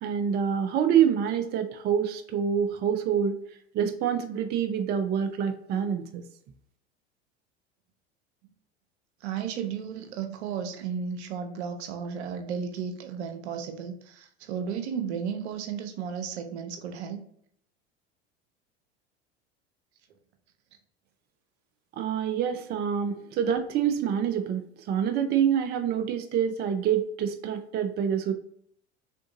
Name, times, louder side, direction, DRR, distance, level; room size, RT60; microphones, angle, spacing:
voice 1, 0.0-3.4 3.7-6.2 21.9-28.3, right 8 dB, 30° right, 6 dB, 0.4 m, -26 dB
voice 2, 9.2-17.2, right 7 dB, 75° right, 6 dB, 0.7 m, -34 dB
3.6 x 2.6 x 2.6 m, 0.67 s
hypercardioid pair, 80°, 33 cm